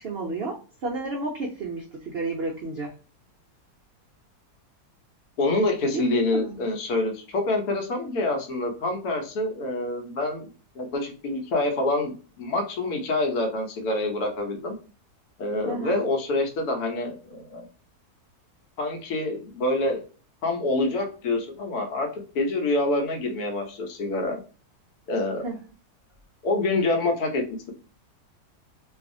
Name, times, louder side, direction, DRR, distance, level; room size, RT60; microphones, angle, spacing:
voice 1, 0.0-2.9 5.9-6.6 15.7-16.0 25.4-25.6, right 3 dB, 75° right, -1 dB, 0.5 m, -32 dB
voice 2, 5.4-10.5 10.7-14.8 15.4-17.6 18.8-20.0 20.4-22.1 22.3-24.4 25.1-25.4 26.4-27.7, left 2 dB, 75° left, 3 dB, 1.2 m, -26 dB
2.7 x 2.4 x 2.5 m, 0.37 s
omnidirectional pair, 1.7 m